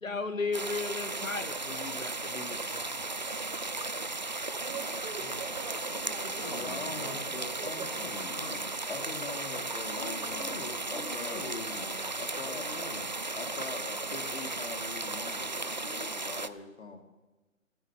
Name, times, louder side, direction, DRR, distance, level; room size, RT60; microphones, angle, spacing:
voice 1, 0.0-2.8, left 4 dB, 75° left, 9 dB, 1.8 m, -35 dB
sound 1, 0.5-16.5, right 2 dB, 35° right, 0.4 m, -35 dB
voice 2, 4.6-8.0, right 5 dB, 15° right, 1 dB, 2.3 m, -44 dB
voice 3, 5.9-7.3 8.0-8.7 9.9-13.1, left 4 dB, 35° left, 3 dB, 1.8 m, -44 dB
voice 4, 6.5-7.9 8.9-11.9 12.2-12.7 13.3-17.0, left 4 dB, 55° left, 4 dB, 2.9 m, -43 dB
14.0 x 13.0 x 7.3 m, 1.2 s
figure-of-eight pair, 155°, 40 cm